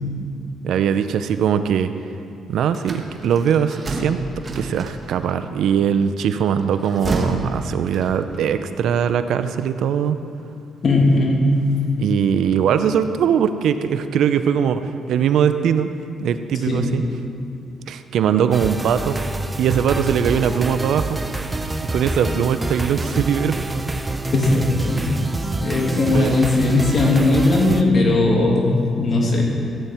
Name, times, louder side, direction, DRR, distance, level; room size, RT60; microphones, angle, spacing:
voice 1, 0.6-1.9 2.5-4.2 4.5-10.2 12.0-15.9 16.2-17.0 17.9-19.2 19.6-21.2 21.8-23.6 26.1-26.4, right 8 dB, 75° right, 11 dB, 0.5 m, -20 dB
sound 1, 2.7-5.3 6.6-8.4, right 2 dB, 35° right, 1.3 m, -29 dB
voice 2, 10.8-11.8 16.7-16.9 22.3-22.4 24.3-25.2 25.6-29.5, left 2 dB, 45° left, -1 dB, 2.4 m, -18 dB
sound 2, 18.5-27.8, right 2 dB, 20° right, 0.6 m, -27 dB
15.0 x 9.0 x 4.4 m, 2.5 s
cardioid pair, 90°, 0 cm